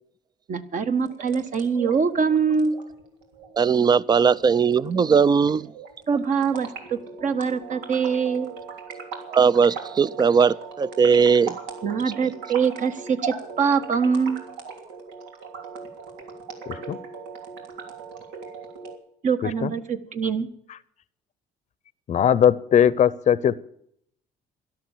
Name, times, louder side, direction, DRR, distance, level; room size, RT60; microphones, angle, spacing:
voice 1, 0.5-2.8 6.1-8.5 11.8-14.4 19.2-20.5, right 6 dB, 50° right, 1.4 m, -24 dB
sound 1, 1.0-19.0, right 5 dB, 90° right, 3.2 m, -39 dB
voice 2, 3.6-5.7 9.3-11.6, right 6 dB, 25° right, 0.5 m, -19 dB
voice 3, 16.7-17.0 19.6-19.7 22.1-23.6, left 9 dB, 45° left, 0.7 m, -19 dB
13.0 x 12.0 x 7.4 m
cardioid pair, 110°, 17 cm